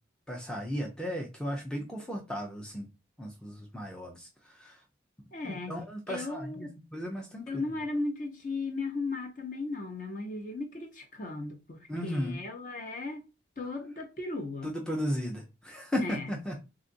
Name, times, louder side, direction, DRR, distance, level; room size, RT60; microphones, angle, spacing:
voice 1, 0.3-2.9 3.2-4.3 4.6-4.8 5.4-7.5 11.9-12.4 14.6-16.6, equal, 5° left, 0.4 m, -35 dB
voice 2, 5.3-5.8 6.1-6.7 7.5-13.2 13.6-14.7 16.0-16.3, left 3 dB, 40° left, 0.7 m, -36 dB
3.7 x 2.4 x 2.5 m
head